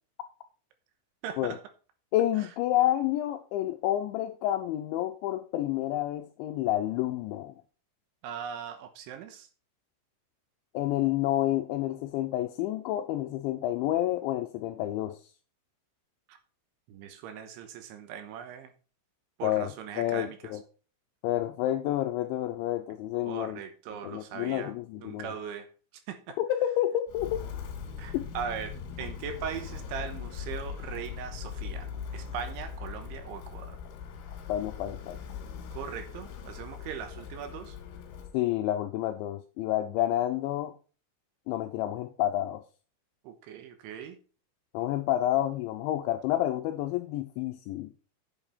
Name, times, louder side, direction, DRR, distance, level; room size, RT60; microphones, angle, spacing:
voice 1, 1.2-1.6 2.4-2.5 8.2-9.5 16.3-16.4 16.9-18.7 19.4-20.5 23.2-25.7 26.1-26.4 28.0-33.8 35.7-37.8 43.2-44.2, right 8 dB, 75° right, 3.2 m, -40 dB
voice 2, 2.1-7.5 10.7-15.2 19.4-20.6 21.2-23.6 24.0-25.3 26.4-27.5 28.1-28.3 34.5-35.2 38.3-40.7 41.5-42.6 44.7-47.9, left 13 dB, 85° left, 2.7 m, -29 dB
Walk footsteps, 27.1-38.4, left 7 dB, 70° left, 4.2 m, -40 dB
9.0 x 7.9 x 4.3 m
omnidirectional pair, 5.9 m